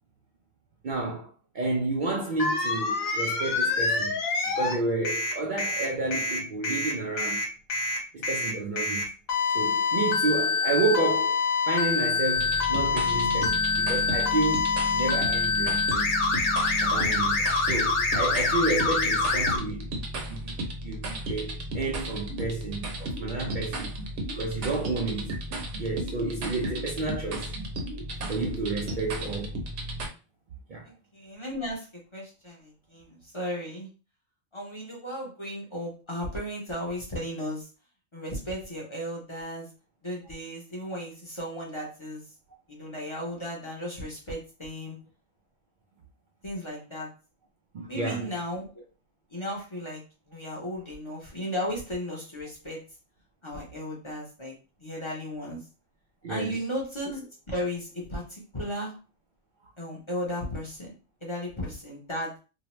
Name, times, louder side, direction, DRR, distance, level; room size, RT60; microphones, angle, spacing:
voice 1, 0.8-4.2 4.5-7.4 8.1-9.1 9.5-16.1 16.8-23.9 24.3-25.4 25.8-27.5 28.3-29.5 30.7-30.9 47.7-48.3 56.2-56.6, right 3 dB, 85° right, 0.4 m, -31 dB
sound 1, 2.4-4.7 5.0-19.6, left 4 dB, 85° left, 1.1 m, -26 dB
sound 2, 12.3-30.1, right 1 dB, 65° right, 0.9 m, -34 dB
voice 2, 28.9-29.3 30.9-31.9 32.1-33.9 34.5-37.6 38.1-39.7 40.0-42.2 42.7-45.0 46.4-47.1 47.9-48.8 49.3-50.0 50.3-52.8 53.4-54.5 54.8-55.6 56.3-58.9 59.8-60.9 61.2-62.4, equal, 30° left, 0.6 m, -35 dB
2.7 x 2.1 x 3.0 m
omnidirectional pair, 1.4 m